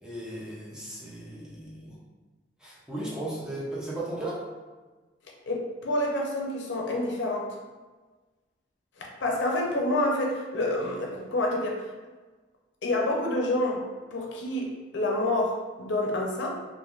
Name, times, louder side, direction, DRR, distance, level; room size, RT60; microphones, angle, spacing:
voice 1, 0.0-2.0 2.6-4.4, right 1 dB, 5° right, -7 dB, 0.5 m, -36 dB
voice 2, 5.5-7.5 9.0-11.8 12.8-13.8 14.1-16.5, left 1 dB, 70° left, -1 dB, 0.5 m, -28 dB
3.2 x 2.4 x 2.4 m, 1.3 s
head